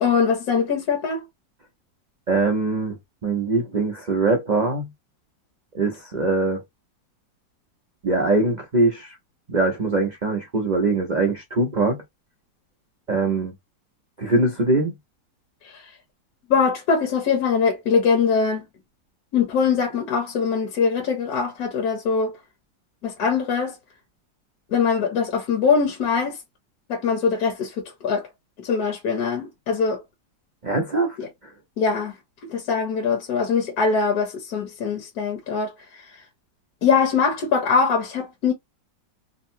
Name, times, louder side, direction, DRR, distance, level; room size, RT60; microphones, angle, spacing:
voice 1, 0.0-1.2 15.6-15.7 16.5-18.7 19.3-22.4 23.0-23.7 24.7-26.4 26.9-28.3 28.6-30.0 31.2-31.3 31.8-32.1 32.4-35.7 36.8-38.5, left 5 dB, 60° left, 1.2 m, -22 dB
voice 2, 2.3-3.0 3.2-4.9 5.7-6.6 8.0-9.2 9.5-12.0 13.1-13.5 14.2-14.9 30.6-31.2, right 2 dB, 85° right, 0.4 m, -22 dB
3.6 x 2.1 x 2.6 m
omnidirectional pair, 2.0 m